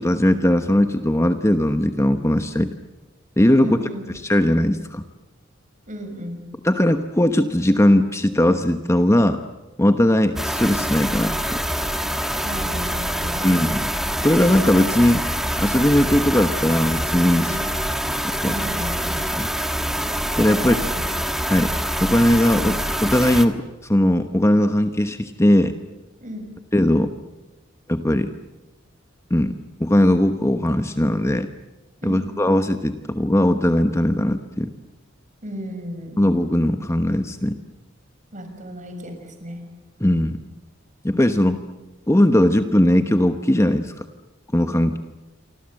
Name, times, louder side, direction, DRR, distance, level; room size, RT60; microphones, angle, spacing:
voice 1, 0.0-2.7 3.4-3.8 4.2-5.0 6.6-9.4 9.8-11.3 13.4-13.9 14.2-15.2 15.6-17.6 18.2-18.5 19.4-19.5 20.4-20.8 21.5-21.7 22.0-25.7 26.7-27.1 27.9-28.3 29.3-31.5 32.0-34.7 36.2-37.6 40.0-40.4 41.0-41.6 42.1-44.1 44.5-45.0, left 1 dB, 15° left, 8 dB, 1.0 m, -19 dB
voice 2, 3.6-4.1 5.9-6.4 12.4-13.6 17.4-17.6 18.4-19.2 20.5-21.1 26.2-26.5 32.0-32.3 35.4-36.2 38.3-39.6, equal, 40° right, 6 dB, 6.5 m, -34 dB
sound 1, 10.4-23.5, equal, ahead, 1.6 m, -25 dB
28.5 x 25.0 x 7.7 m, 1.1 s
head